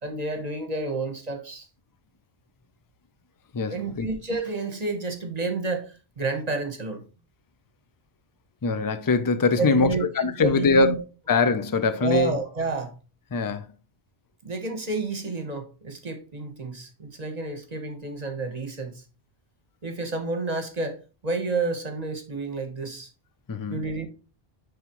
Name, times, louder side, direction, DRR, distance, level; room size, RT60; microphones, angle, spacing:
voice 1, 0.0-1.7 3.7-7.0 9.6-11.0 12.0-12.9 14.4-19.0 19.8-23.1 23.7-24.1, right 3 dB, 40° right, 1.1 m, -30 dB
voice 2, 3.5-4.1 8.6-12.4 13.3-13.7 23.5-23.9, left 4 dB, 30° left, 0.4 m, -23 dB
9.5 x 3.6 x 3.0 m
omnidirectional pair, 1.1 m